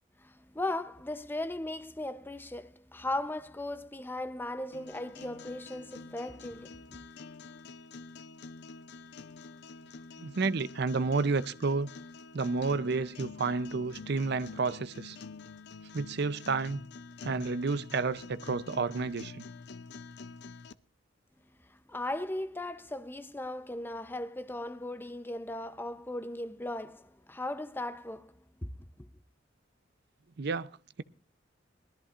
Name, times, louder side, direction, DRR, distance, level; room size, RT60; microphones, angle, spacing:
voice 1, 0.2-6.8 21.9-28.3 28.6-28.7 29.0-29.1, left 1 dB, 10° left, 0.6 m, -37 dB
sound 1, 4.7-20.7, left 4 dB, 60° left, 0.5 m, -47 dB
voice 2, 10.2-11.9 12.3-15.2 15.9-16.8 17.2-19.4 30.4-30.7, right 4 dB, 60° right, 0.6 m, -30 dB
21.5 x 13.5 x 2.5 m
head